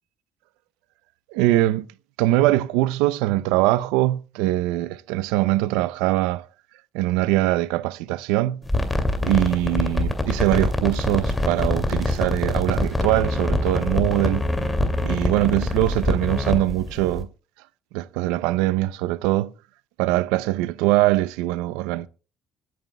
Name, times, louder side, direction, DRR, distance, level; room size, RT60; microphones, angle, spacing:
voice 1, 1.3-1.8 2.2-6.4 6.9-8.6 9.2-14.5 15.0-17.3 17.9-19.5 20.0-22.1, right 16 dB, 90° right, 0.5 m, -22 dB
sound 1, 8.6-17.2, left 1 dB, 15° left, 2.3 m, -24 dB
25.0 x 9.5 x 2.2 m
supercardioid pair, 80°, 0 cm